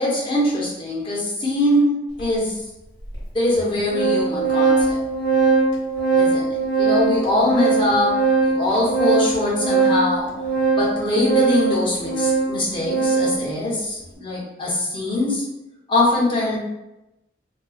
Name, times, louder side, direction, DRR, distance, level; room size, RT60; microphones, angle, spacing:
voice 1, 0.0-2.6 3.3-5.0 6.1-8.2 8.4-10.3 10.7-15.4 15.9-16.6, left 1 dB, 30° left, -5 dB, 0.6 m, -22 dB
Organ, 2.2-2.3 3.1-3.2 3.6-13.4, right 4 dB, 75° left, 0.7 m, -21 dB
2.4 x 2.3 x 2.3 m, 0.96 s
head